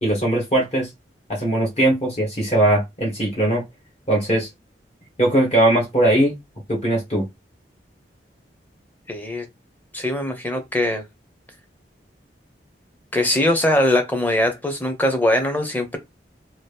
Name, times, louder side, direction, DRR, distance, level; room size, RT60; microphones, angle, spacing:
voice 1, 0.0-0.9 1.3-3.6 4.1-4.5 5.2-6.4 6.7-7.3, right 1 dB, 35° left, 1.0 m, -19 dB
voice 2, 9.1-9.5 9.9-11.0 13.1-16.0, left 1 dB, 10° left, 0.7 m, -21 dB
2.9 x 2.4 x 3.3 m
head